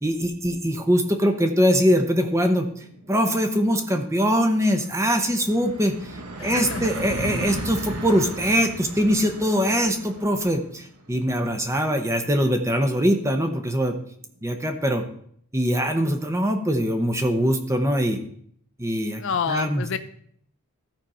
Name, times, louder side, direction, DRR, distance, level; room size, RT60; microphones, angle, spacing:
voice 1, 0.0-14.0 14.4-15.0 15.5-18.2 18.8-19.2 19.5-19.8, equal, 15° right, 6 dB, 0.7 m, -22 dB
sound 1, 2.7-13.6, right 2 dB, 85° right, 1.3 m, -37 dB
voice 2, 6.4-6.9 7.4-7.5 19.2-20.0, left 6 dB, 55° left, 10 dB, 0.4 m, -28 dB
13.5 x 5.1 x 4.3 m, 0.64 s
head